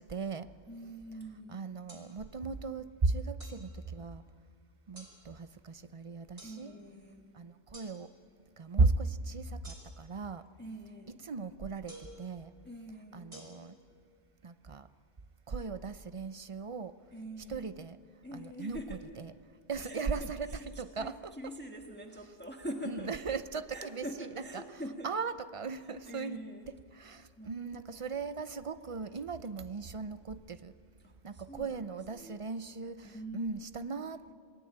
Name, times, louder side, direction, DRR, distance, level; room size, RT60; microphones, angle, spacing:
voice 1, 0.0-0.5 1.5-4.2 4.9-6.7 7.3-8.1 8.6-10.4 11.2-12.5 13.1-13.7 14.4-14.9 15.5-17.0 17.5-18.0 18.3-18.8 19.2-19.3 19.7-20.5 20.8-21.3 22.9-24.0 24.5-24.6 25.0-26.4 27.0-30.7 31.2-34.3, right 4 dB, 35° right, 12 dB, 0.7 m, -36 dB
voice 2, 0.7-1.7 6.4-7.3 10.6-11.2 12.6-13.4 17.1-17.7 18.2-19.2 19.8-23.1 23.7-25.1 25.9-26.7 27.4-28.2 31.0-32.4 33.0-34.1, equal, 10° left, 2 dB, 1.6 m, -45 dB
sound 1, 1.9-2.0 3.4-3.6 4.9-5.1 6.4-6.5 7.7-7.9 9.6-10.1 11.9-12.2 13.3-13.4, right 1 dB, 75° right, 5.5 m, -50 dB
27.5 x 19.5 x 8.8 m, 2.2 s
omnidirectional pair, 1.0 m